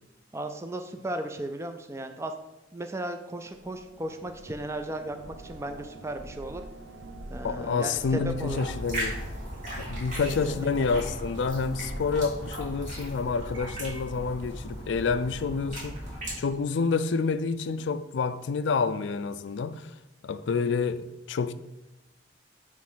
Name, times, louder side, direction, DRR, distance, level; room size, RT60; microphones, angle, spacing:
voice 1, 0.3-2.3 2.7-6.7 7.3-8.6 10.3-10.7, right 1 dB, 15° right, 0.4 m, -36 dB
sound 1, 3.5-14.1, right 1 dB, 85° right, 0.7 m, -43 dB
voice 2, 7.4-9.2 9.8-16.0 16.4-19.9 20.2-21.5, left 5 dB, 70° left, 0.4 m, -28 dB
sound 2, 8.4-16.4, equal, 40° right, 2.7 m, -37 dB
7.2 x 3.2 x 6.1 m
head